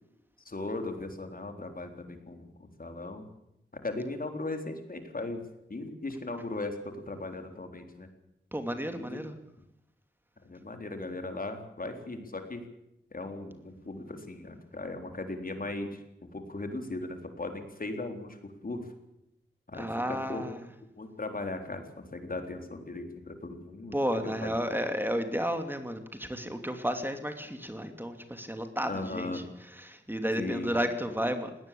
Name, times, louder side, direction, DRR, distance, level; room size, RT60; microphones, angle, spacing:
voice 1, 0.5-3.2 3.7-5.4 5.7-8.1 8.9-9.2 10.4-12.6 13.1-16.0 16.3-18.8 19.7-20.4 21.0-24.0 24.2-24.6 28.9-29.4 30.4-30.7, left 2 dB, 45° left, 5 dB, 3.9 m, -38 dB
voice 2, 8.5-9.3 19.8-20.6 23.9-29.4 29.8-31.5, equal, 10° right, 7 dB, 2.7 m, -32 dB
20.0 x 18.0 x 8.6 m, 0.83 s
cardioid pair, 60°, 20 cm